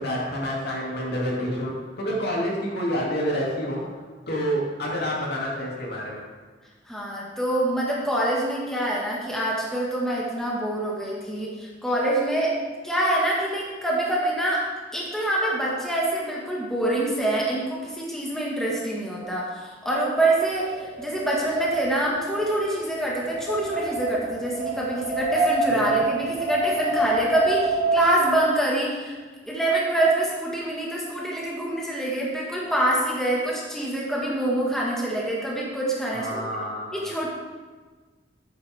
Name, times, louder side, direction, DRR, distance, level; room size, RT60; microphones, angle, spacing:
voice 1, 0.0-1.7 2.0-3.8 4.3-6.2 25.7-25.9 36.1-37.3, equal, 60° left, -3 dB, 2.5 m, -28 dB
voice 2, 6.9-12.6 12.8-14.7 14.9-29.2 29.5-36.4 36.9-37.3, right 1 dB, 5° left, -5 dB, 1.7 m, -25 dB
Wind, 20.4-28.4, right 2 dB, 30° right, 2.2 m, -27 dB
10.5 x 9.3 x 3.5 m, 1.4 s
head